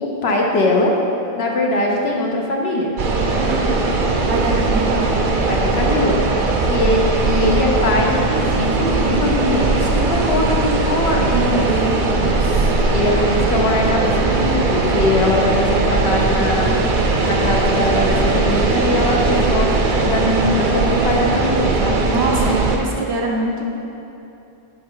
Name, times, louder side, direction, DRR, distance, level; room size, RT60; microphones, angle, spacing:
voice 1, 0.0-0.9 1.3-2.9 5.5-6.2 6.7-11.6 12.9-16.7 17.2-19.7 20.0-22.0, left 2 dB, 75° left, 0 dB, 1.2 m, -21 dB
sound 1, 3.0-22.8, right 3 dB, 55° right, 0.8 m, -19 dB
voice 2, 3.4-3.8 4.3-5.2 11.3-12.7 22.0-23.6, right 2 dB, 90° right, -1 dB, 1.2 m, -24 dB
7.7 x 5.1 x 3.9 m, 2.8 s
omnidirectional pair, 1.1 m